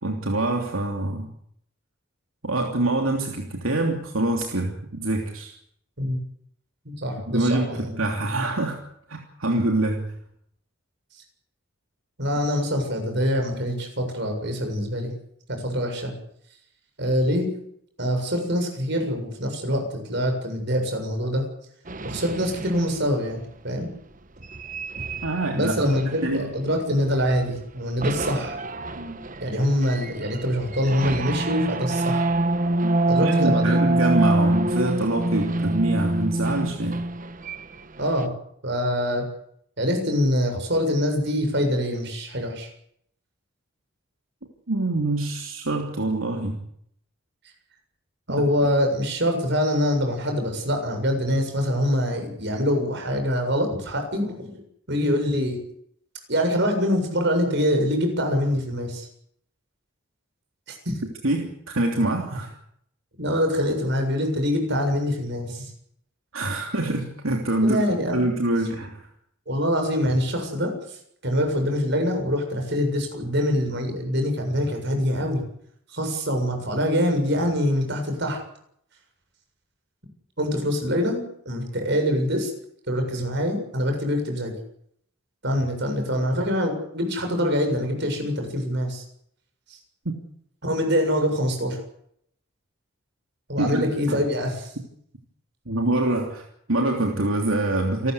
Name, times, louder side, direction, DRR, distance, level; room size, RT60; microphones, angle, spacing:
voice 1, 0.0-1.3 2.4-5.5 7.3-8.8 9.1-10.1 25.2-26.5 29.0-29.2 32.8-32.9 33.2-37.0 44.7-46.6 61.2-62.5 66.3-67.8 68.1-69.0 90.0-90.2 93.6-94.2 95.7-98.1, right 2 dB, 80° right, 2 dB, 3.1 m, -25 dB
voice 2, 6.9-8.0 12.2-15.1 15.5-16.1 17.0-17.5 18.0-21.4 22.0-23.9 25.5-28.6 29.4-32.3 33.1-33.8 38.0-38.3 38.6-39.2 39.8-42.7 48.3-54.6 54.9-55.6 56.3-59.1 60.7-61.0 63.2-65.7 67.6-68.3 69.5-75.4 75.9-78.4 80.4-82.5 82.9-84.5 85.4-89.0 89.7-89.8 90.6-91.8 93.5-94.7, equal, 55° right, 4 dB, 7.2 m, -24 dB
sound 1, 21.9-23.2 24.4-26.9 27.2-27.6 28.0-38.3, right 2 dB, 40° right, 1.2 m, -26 dB
28.5 x 13.5 x 8.3 m, 0.69 s
head